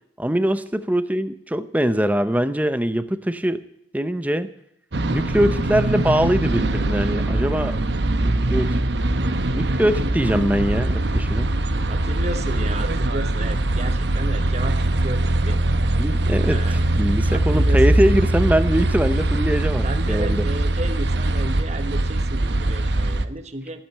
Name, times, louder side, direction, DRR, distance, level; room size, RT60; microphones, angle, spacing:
voice 1, 0.2-3.6 3.9-4.5 5.1-7.8 8.2-8.8 9.5-11.5 15.9-20.5, equal, 10° right, 12 dB, 0.7 m, -22 dB
sound 1, 4.9-23.3, right 1 dB, 70° right, 0.9 m, -22 dB
voice 2, 11.9-14.8 15.0-15.6 16.4-16.8 17.3-17.8 19.8-23.8, right 2 dB, 40° right, 7 dB, 1.1 m, -33 dB
15.0 x 9.0 x 8.9 m, 0.77 s
head